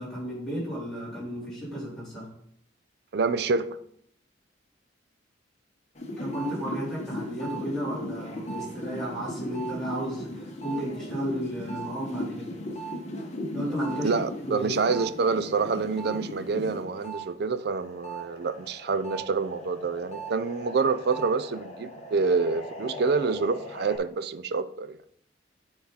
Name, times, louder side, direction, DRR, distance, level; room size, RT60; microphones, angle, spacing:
voice 1, 0.0-2.3 6.2-12.5 13.5-14.7, equal, ahead, 3.5 m, -33 dB
voice 2, 3.1-3.8 14.0-25.0, right 4 dB, 60° right, 0.4 m, -27 dB
sound 1, 5.9-17.2 17.6-24.0, equal, 40° left, 1.1 m, -38 dB
9.3 x 4.8 x 4.0 m
head